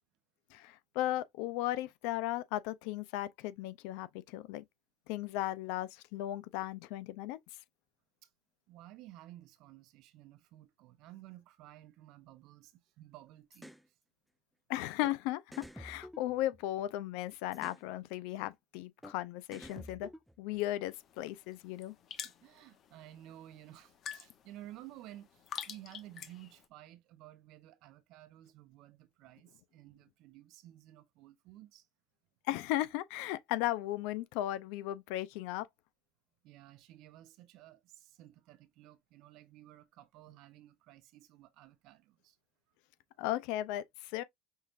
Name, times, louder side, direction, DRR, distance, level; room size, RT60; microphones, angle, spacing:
voice 1, 0.5-4.6 5.1-7.4 14.7-20.1 20.4-21.9 32.5-35.7 43.2-44.2, left 15 dB, 75° left, 0.5 m, -36 dB
voice 2, 8.7-13.7 22.2-31.9 36.4-42.4, right 14 dB, 60° right, 0.7 m, -54 dB
sound 1, 13.5-13.8 15.0-15.2 15.5-16.9 17.5-17.9 19.0-19.2 19.5-20.6, equal, ahead, 0.3 m, -50 dB
sound 2, 20.9-26.7, left 8 dB, 40° left, 0.8 m, -48 dB
5.5 x 3.2 x 2.5 m
cardioid pair, 130°, 0 cm